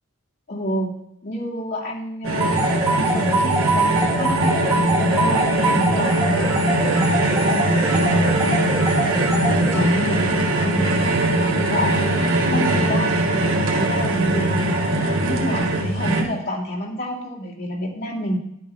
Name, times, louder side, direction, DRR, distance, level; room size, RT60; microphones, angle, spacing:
voice 1, 0.5-0.9 1.2-2.6 2.9-4.5 5.0-8.7 9.1-11.3 11.7-13.2 13.7-18.4, equal, 50° left, -3 dB, 2.4 m, -28 dB
sound 1, 2.2-16.2, right 1 dB, 85° right, 1.7 m, -21 dB
sound 2, 2.4-10.2, right 2 dB, 15° right, 2.9 m, -24 dB
11.0 x 8.4 x 3.5 m, 0.75 s
head